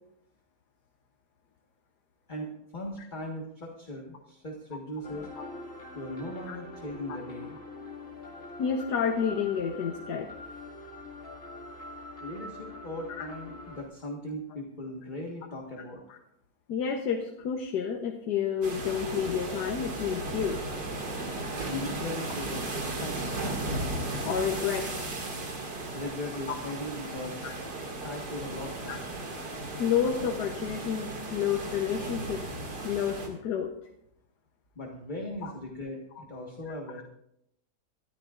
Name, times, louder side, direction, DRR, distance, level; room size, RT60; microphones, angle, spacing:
voice 1, 2.3-5.3 5.9-7.6 12.2-16.0 21.6-23.5 25.9-27.4 28.0-29.1 34.7-37.0, left 1 dB, 30° left, 0 dB, 1.5 m, -38 dB
sound 1, 5.0-13.8, left 2 dB, 50° left, 2.6 m, -44 dB
voice 2, 8.6-10.3 13.1-13.3 16.1-16.2 16.7-20.6 24.2-25.1 26.5-26.6 27.4-27.5 28.9-29.0 29.8-32.4 32.8-33.7 35.4-35.5 36.2-36.3, left 7 dB, 80° left, 3 dB, 1.5 m, -30 dB
sound 2, 18.6-33.3, right 2 dB, 85° right, 2.8 m, -35 dB
23.5 x 13.0 x 2.5 m, 0.79 s
omnidirectional pair, 1.7 m